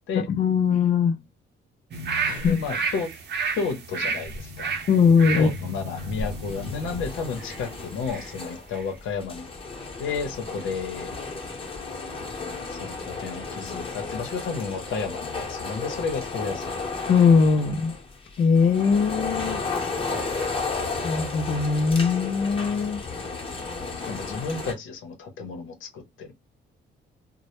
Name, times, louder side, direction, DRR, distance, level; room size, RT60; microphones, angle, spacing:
voice 1, 0.1-1.2 2.2-2.6 4.9-5.5 17.1-17.9 18.4-19.6 21.0-23.0, left 5 dB, 45° left, 0.4 m, -20 dB
sound 1, 1.9-8.3 8.7-8.8, right 4 dB, 60° right, 0.7 m, -32 dB
voice 2, 2.4-3.1 3.6-4.7 5.4-9.5 10.0-11.1 12.7-16.8 24.0-26.3, left 5 dB, 80° left, 0.7 m, -32 dB
sound 2, 5.9-24.7, left 4 dB, 25° left, 0.8 m, -33 dB
2.1 x 2.0 x 2.9 m
cardioid pair, 90°, 20 cm